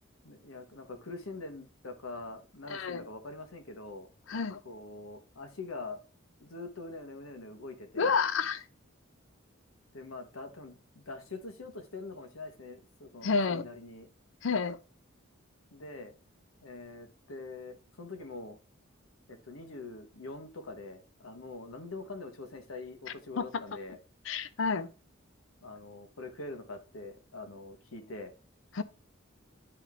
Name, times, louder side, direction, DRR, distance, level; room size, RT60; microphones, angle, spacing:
voice 1, 0.2-4.1 4.6-6.0 6.4-8.2 9.9-14.1 15.7-16.1 16.6-18.6 19.3-24.0 25.6-28.3, left 3 dB, 80° left, 1.1 m, -44 dB
voice 2, 2.7-3.0 4.3-4.6 8.0-8.6 13.2-13.6 14.4-14.8 23.4-23.5 24.3-24.9 28.7-28.8, left 5 dB, 65° left, 0.5 m, -29 dB
9.8 x 3.5 x 3.6 m
head